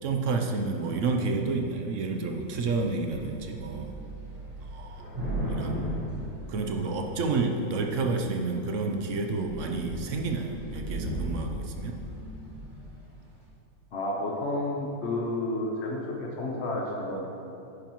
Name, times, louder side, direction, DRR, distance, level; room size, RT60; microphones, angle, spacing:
voice 1, 0.0-3.9 4.7-5.0 5.5-5.8 6.5-12.0, right 3 dB, 60° right, 3 dB, 0.9 m, -30 dB
Thunder / Rain, 2.7-2.8 3.1-7.2 7.9-8.4 8.8-9.0 9.2-13.0, right 1 dB, 80° right, 2.6 m, -36 dB
voice 2, 13.9-17.3, left 1 dB, 45° left, -1 dB, 1.0 m, -31 dB
10.5 x 9.7 x 3.0 m, 3.0 s
omnidirectional pair, 1.9 m